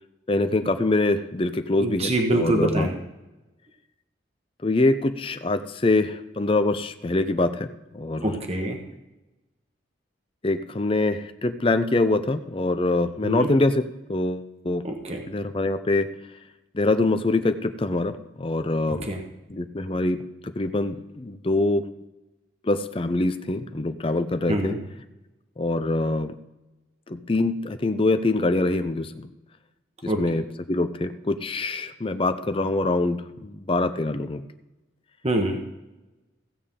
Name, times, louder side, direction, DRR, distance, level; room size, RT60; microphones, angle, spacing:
voice 1, 0.3-2.9 4.6-7.7 7.9-8.4 10.4-13.8 14.1-14.8 15.3-16.1 16.7-19.1 19.5-20.2 20.4-21.8 22.6-24.8 25.6-26.3 27.1-29.3 30.0-34.4, left 2 dB, 30° left, 9 dB, 0.6 m, -24 dB
voice 2, 1.8-2.9 8.2-8.8 13.2-13.5 14.8-15.2 19.0-19.2 24.5-24.8 30.1-30.2 35.2-35.6, right 1 dB, 35° right, 3 dB, 1.2 m, -25 dB
16.0 x 8.5 x 3.7 m, 1.0 s
head